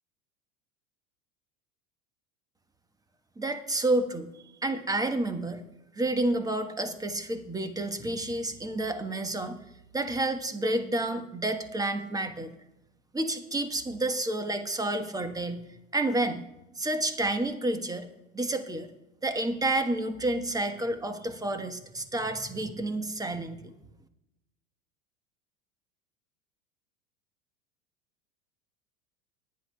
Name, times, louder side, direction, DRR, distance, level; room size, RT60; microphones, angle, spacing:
voice 1, 3.4-4.3 4.6-5.6 5.9-9.6 9.9-12.5 13.1-16.5 16.7-18.1 18.3-18.9 19.2-23.7, right 2 dB, 10° right, 8 dB, 1.2 m, -30 dB
19.5 x 10.5 x 2.3 m, 0.92 s
hypercardioid pair, 85°, 38 cm